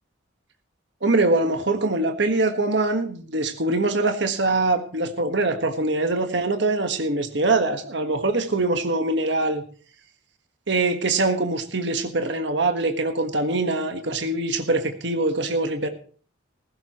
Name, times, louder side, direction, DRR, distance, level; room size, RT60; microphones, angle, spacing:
voice 1, 1.0-9.6 10.7-15.9, right 2 dB, 65° right, 6 dB, 1.5 m, -23 dB
17.5 x 15.5 x 3.0 m, 0.43 s
head